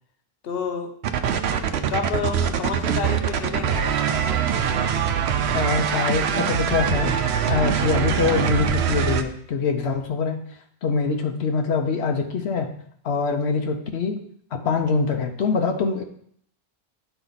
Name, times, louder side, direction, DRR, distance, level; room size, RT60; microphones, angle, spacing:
voice 1, 0.4-0.9 1.9-3.9, left 5 dB, 65° left, 5 dB, 1.0 m, -29 dB
sound 1, 1.0-9.2, right 8 dB, 85° right, 0.9 m, -23 dB
voice 2, 5.5-7.1 7.5-10.4 10.8-12.7 13.0-14.2 14.5-16.0, left 5 dB, 90° left, 4 dB, 1.1 m, -24 dB
10.5 x 4.4 x 4.0 m, 0.64 s
omnidirectional pair, 1.1 m